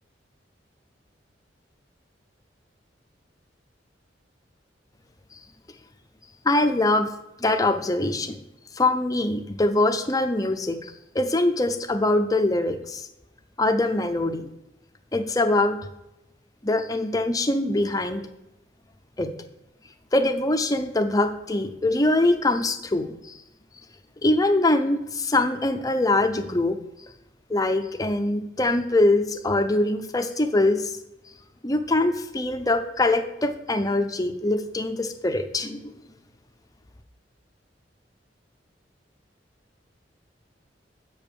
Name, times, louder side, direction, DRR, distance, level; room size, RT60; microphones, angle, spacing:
voice 1, 6.4-7.1 7.4-8.4 8.8-13.1 13.6-14.5 15.1-15.9 16.6-18.2 19.2-19.3 20.1-23.2 24.2-26.8 27.5-30.9 31.6-35.9, left 2 dB, 20° left, 7 dB, 0.6 m, -23 dB
7.1 x 5.2 x 6.9 m, 0.89 s
head